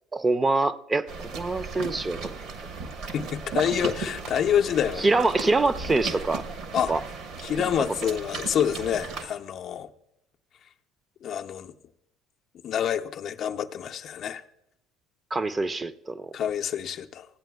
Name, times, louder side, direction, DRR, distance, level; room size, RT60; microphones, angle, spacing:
voice 1, 0.1-2.4 5.0-6.5 6.9-7.0 15.3-16.4, right 3 dB, 25° right, 0.5 m, -25 dB
sound 1, 1.1-9.3, right 4 dB, 60° right, 1.0 m, -36 dB
voice 2, 3.1-5.2 6.7-6.9 7.4-9.9 11.2-11.7 12.6-14.4 16.3-17.3, left 9 dB, 55° left, 0.5 m, -27 dB
15.5 x 8.8 x 2.3 m
hypercardioid pair, 65°, 0 cm